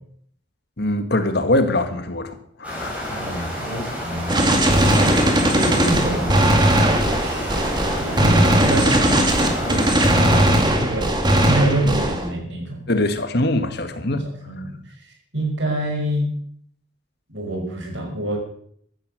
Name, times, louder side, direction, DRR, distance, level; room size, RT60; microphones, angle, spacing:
voice 1, 0.8-3.2 12.9-14.2, left 1 dB, 55° left, 1.8 m, -22 dB
sound 1, 2.6-10.4, equal, 5° right, 5.7 m, -29 dB
voice 2, 3.1-4.5 4.8-6.5 7.2-11.2 11.4-12.9 14.1-14.2 14.5-14.7 15.3-16.3 17.3-18.4, right 1 dB, 65° right, 5.5 m, -26 dB
Gunshot gunfire, 4.3-12.3, right 1 dB, 20° right, 2.3 m, -18 dB
14.5 x 11.0 x 6.5 m
head